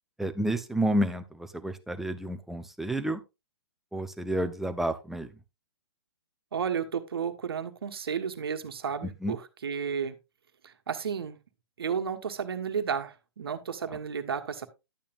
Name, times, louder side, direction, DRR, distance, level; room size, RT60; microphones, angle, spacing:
voice 1, 0.2-3.2 3.9-5.3 9.0-9.4 13.8-14.0, right 1 dB, ahead, 7 dB, 0.8 m, -30 dB
voice 2, 6.5-10.2 10.6-11.4 11.8-14.7, right 6 dB, 65° right, 8 dB, 1.4 m, -32 dB
11.5 x 8.6 x 2.6 m, 0.25 s
figure-of-eight pair, 120°, 14 cm